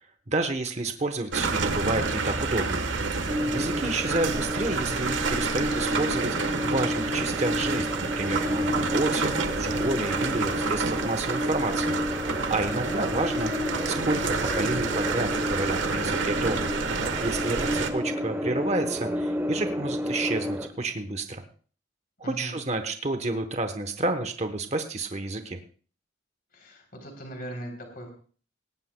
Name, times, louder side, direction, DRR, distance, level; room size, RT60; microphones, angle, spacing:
voice 1, 0.3-2.8 3.5-9.3 9.6-12.0 12.5-16.7 17.2-21.4 22.2-25.6, right 2 dB, 35° right, 7 dB, 1.0 m, -30 dB
sound 1, 1.3-17.9, right 4 dB, 75° right, 1.3 m, -29 dB
sound 2, 3.3-20.7, left 1 dB, 10° right, 0.9 m, -31 dB
voice 2, 12.8-13.1 22.2-22.6 26.5-28.1, right 1 dB, 50° left, 2 dB, 3.3 m, -39 dB
18.5 x 17.5 x 2.2 m, 0.42 s
head